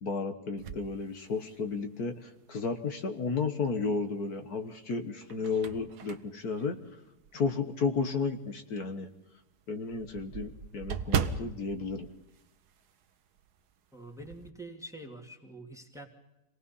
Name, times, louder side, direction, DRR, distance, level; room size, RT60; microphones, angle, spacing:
voice 1, 0.0-6.8 7.3-9.1 9.7-12.1, left 4 dB, 70° left, 6 dB, 1.9 m, -33 dB
sound 1, 0.6-1.9 2.4-2.5 4.0-4.5 5.0-7.7 8.1-8.2 8.6-8.7 9.0-9.1 9.3-13.1 13.4-13.6 13.9-14.5, right 7 dB, 75° right, 1.5 m, -37 dB
voice 2, 13.9-16.1, right 1 dB, ahead, 2 dB, 2.4 m, -45 dB
26.5 x 18.5 x 5.6 m, 0.95 s
omnidirectional pair, 1.7 m